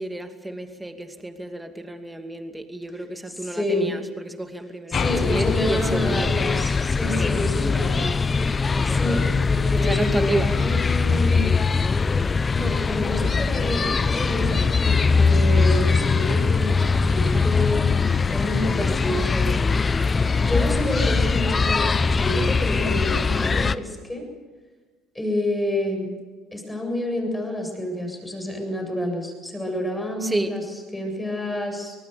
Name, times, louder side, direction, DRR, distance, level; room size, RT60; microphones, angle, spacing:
voice 1, 0.0-6.3 7.1-7.4 8.7-9.3 9.8-10.5 30.2-30.5, right 1 dB, 10° right, 6 dB, 2.5 m, -31 dB
voice 2, 3.3-3.9 4.9-8.1 8.8-11.4 12.5-17.9 18.3-19.5 20.4-24.3 25.1-26.1 26.5-30.6 30.9-31.9, left 1 dB, 10° left, 3 dB, 7.8 m, -28 dB
sound 1, 4.9-7.2, left 9 dB, 55° left, 0.8 m, -33 dB
sound 2, 4.9-23.7, left 4 dB, 30° left, 0.8 m, -21 dB
sound 3, 14.2-22.9, right 2 dB, 40° right, 6.3 m, -49 dB
25.0 x 19.0 x 7.0 m, 1.4 s
supercardioid pair, 75°, 0 cm